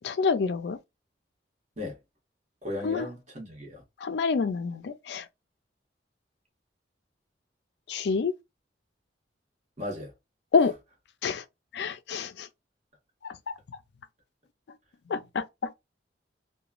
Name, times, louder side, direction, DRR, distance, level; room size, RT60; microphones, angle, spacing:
voice 1, 0.0-0.8 2.8-3.1 4.0-5.3 7.9-8.3 10.5-10.7 11.2-11.4 11.7-12.5 13.2-13.6 15.1-15.7, left 5 dB, 65° left, 0.4 m, -27 dB
voice 2, 2.6-3.8 9.8-10.1, left 2 dB, 40° right, 1.3 m, -36 dB
2.9 x 2.2 x 2.4 m
head